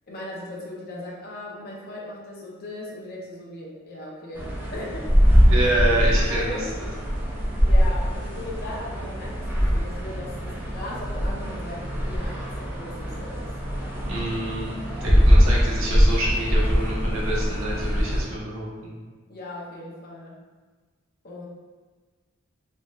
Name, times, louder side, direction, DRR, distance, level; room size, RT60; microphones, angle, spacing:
voice 1, 0.1-5.1 6.3-6.6 7.6-13.5 19.3-20.4 21.2-21.5, left 1 dB, 45° left, -5 dB, 0.5 m, -38 dB
sound 1, 4.4-18.3, equal, 10° right, 0.4 m, -22 dB
voice 2, 5.5-6.6 14.1-14.7 15.0-19.0, right 1 dB, 70° right, -6 dB, 0.8 m, -27 dB
3.1 x 2.6 x 2.3 m, 1.4 s
head